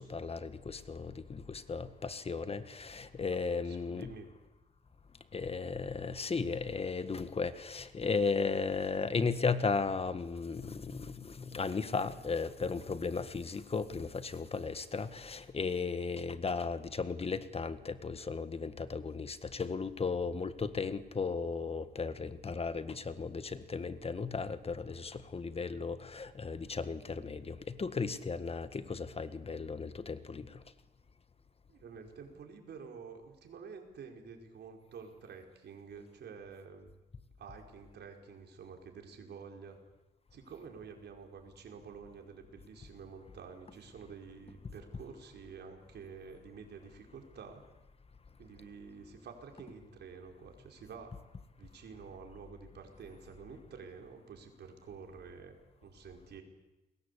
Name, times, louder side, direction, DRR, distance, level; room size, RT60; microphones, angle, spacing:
voice 1, 0.0-4.1 5.3-30.5, left 4 dB, 35° left, 12 dB, 1.7 m, -35 dB
voice 2, 3.6-4.3 31.7-37.0 37.4-39.8 40.3-47.6 48.4-51.2 51.6-56.4, right 5 dB, 75° right, 3 dB, 5.1 m, -49 dB
30.0 x 21.5 x 8.5 m, 1.1 s
cardioid pair, 100°, 17 cm